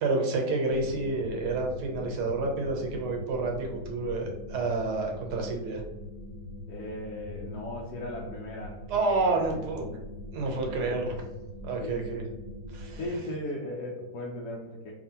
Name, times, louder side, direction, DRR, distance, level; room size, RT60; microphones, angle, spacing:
voice 1, 0.0-5.8 8.9-9.8 10.3-11.1 11.6-12.2 12.7-13.0, right 3 dB, 70° right, 1 dB, 1.4 m, -29 dB
sound 1, 0.7-13.1, left 1 dB, 30° right, 1.3 m, -42 dB
voice 2, 6.7-8.8 9.1-9.9 10.7-11.0 11.8-12.4 13.0-14.9, left 1 dB, 70° left, -1 dB, 1.1 m, -38 dB
4.7 x 2.7 x 2.8 m, 1.0 s
omnidirectional pair, 1.8 m